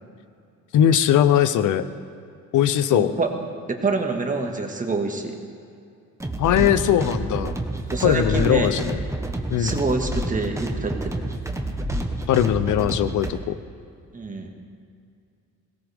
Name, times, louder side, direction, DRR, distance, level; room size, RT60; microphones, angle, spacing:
voice 1, 0.7-1.8 2.5-3.1 6.4-7.6 8.0-9.0 9.5-9.7 12.3-13.5, left 10 dB, 75° left, 13 dB, 0.8 m, -20 dB
voice 2, 2.9-3.3 3.7-5.4 7.9-8.7 9.6-11.2 14.1-14.5, right 3 dB, 25° right, 2 dB, 1.8 m, -26 dB
sound 1, 6.2-13.3, right 1 dB, 10° right, 1.3 m, -29 dB
17.5 x 17.5 x 3.6 m, 2.4 s
cardioid pair, 90°, 30 cm